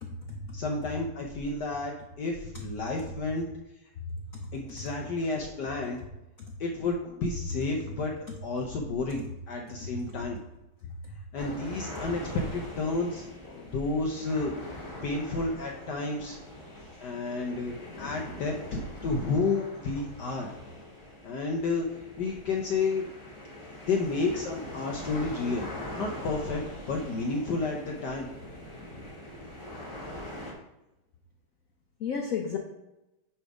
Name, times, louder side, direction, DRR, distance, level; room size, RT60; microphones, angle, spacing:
voice 1, 0.0-0.6 2.5-2.6 9.8-9.9 13.5-13.7 17.9-18.3 32.0-32.6, left 6 dB, 85° left, 2 dB, 0.7 m, -35 dB
voice 2, 0.5-3.6 4.5-6.0 6.6-8.1 8.4-10.4 11.3-13.3 13.7-14.5 15.0-16.4 17.0-20.5 21.2-21.9 22.2-23.1 23.9-25.7 26.0-26.6 26.9-28.3, left 3 dB, 65° left, 1 dB, 1.2 m, -31 dB
sound 1, 11.4-30.5, left 1 dB, 15° left, 1.6 m, -42 dB
9.1 x 3.4 x 4.9 m, 0.94 s
omnidirectional pair, 2.4 m